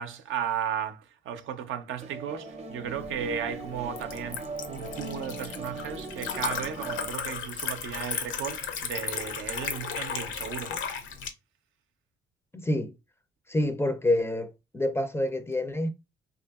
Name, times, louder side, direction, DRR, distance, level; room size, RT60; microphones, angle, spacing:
voice 1, 0.0-10.8, right 8 dB, 80° right, 0.5 m, -35 dB
sound 1, 2.0-7.1, right 3 dB, 30° right, 0.6 m, -39 dB
Liquid, 2.9-11.3, left 6 dB, 80° left, 0.6 m, -35 dB
voice 2, 12.5-12.9 13.5-15.9, left 1 dB, 10° left, 0.4 m, -27 dB
2.7 x 2.4 x 2.3 m
cardioid pair, 90°, 20 cm